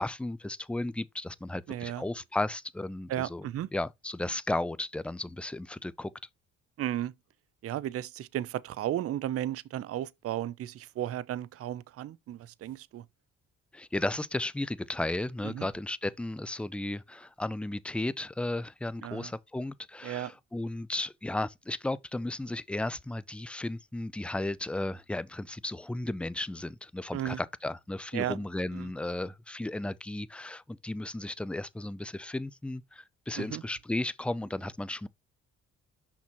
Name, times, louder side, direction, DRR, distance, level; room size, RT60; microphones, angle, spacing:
voice 1, 0.0-6.1 13.7-35.1, left 2 dB, 5° left, 0.4 m, -34 dB
voice 2, 1.7-2.0 3.1-3.7 6.8-7.1 7.6-13.0 15.4-15.7 19.0-19.3 20.0-20.3 27.1-27.4 28.1-28.4 28.7-28.9 33.4-33.6, right 12 dB, 50° right, 0.5 m, -34 dB
6.0 x 5.9 x 3.0 m
cardioid pair, 90°, 30 cm